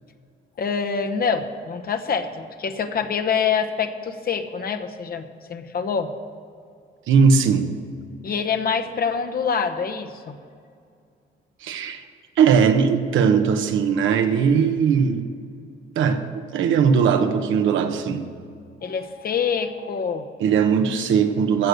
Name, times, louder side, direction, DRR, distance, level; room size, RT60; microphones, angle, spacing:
voice 1, 0.6-6.1 8.2-10.4 18.8-20.3, left 6 dB, 50° left, 7 dB, 0.9 m, -25 dB
voice 2, 7.1-7.7 11.6-12.0 12.4-15.3 15.9-18.2 20.4-21.7, right 6 dB, 80° right, 7 dB, 1.0 m, -19 dB
15.0 x 6.5 x 6.4 m, 2.3 s
cardioid pair, 90°, 20 cm